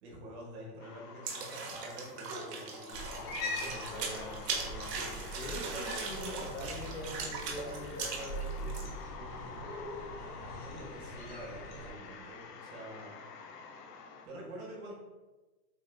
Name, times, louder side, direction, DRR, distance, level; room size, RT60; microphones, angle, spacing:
voice 1, 0.0-4.1 10.2-13.2 14.2-14.9, equal, 40° right, -3 dB, 1.5 m, -47 dB
sound 1, 0.8-14.3, left 5 dB, 80° left, 0.8 m, -48 dB
sound 2, 1.2-8.8, right 4 dB, 80° right, 1.3 m, -39 dB
Cat, 2.9-11.9, equal, 30° left, 1.0 m, -43 dB
voice 2, 3.6-10.4, left 1 dB, 55° left, -1 dB, 1.3 m, -45 dB
7.2 x 2.9 x 2.2 m, 1.2 s
supercardioid pair, 170°, 48 cm